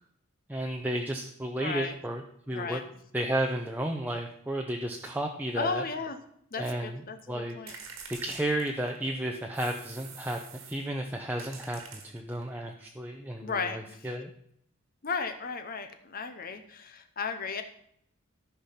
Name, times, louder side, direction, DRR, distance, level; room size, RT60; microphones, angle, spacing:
voice 1, 0.5-2.8 3.1-5.8 6.6-7.8 8.1-10.4 10.7-14.3, right 1 dB, 10° right, 2 dB, 0.7 m, -33 dB
voice 2, 1.6-1.9 2.5-2.8 5.5-6.2 6.5-7.7 13.4-14.0 15.0-17.6, left 5 dB, 45° left, 7 dB, 0.8 m, -35 dB
sound 1, 7.7-9.1 9.5-10.9 11.4-12.5, right 5 dB, 70° right, 1.9 m, -46 dB
14.0 x 5.9 x 5.8 m, 0.69 s
head